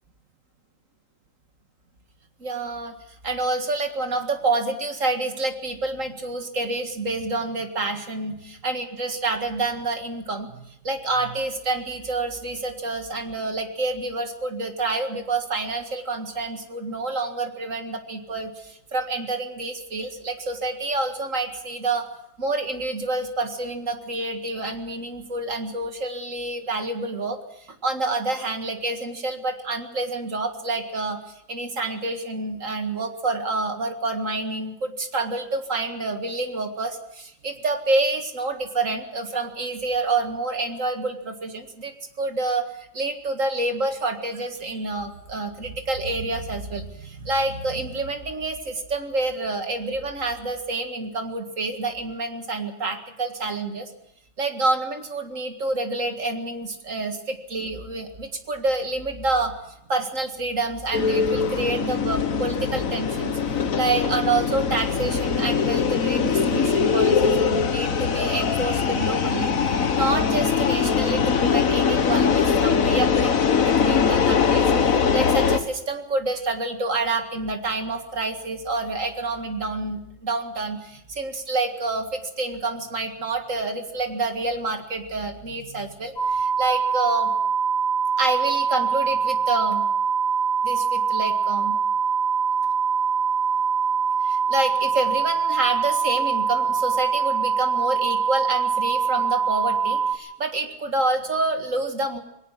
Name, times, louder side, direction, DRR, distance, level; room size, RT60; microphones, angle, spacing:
voice 1, 2.4-3.0 3.2-22.1 22.4-53.9 54.4-87.3 88.2-89.8 90.6-91.8 94.2-102.2, right 2 dB, 50° right, 6 dB, 2.2 m, -28 dB
sound 1, 60.9-75.6, left 6 dB, 55° left, 1.6 m, -22 dB
sound 2, 86.2-100.1, right 6 dB, 70° left, 4.8 m, -23 dB
20.5 x 18.0 x 7.3 m, 0.80 s
omnidirectional pair, 1.8 m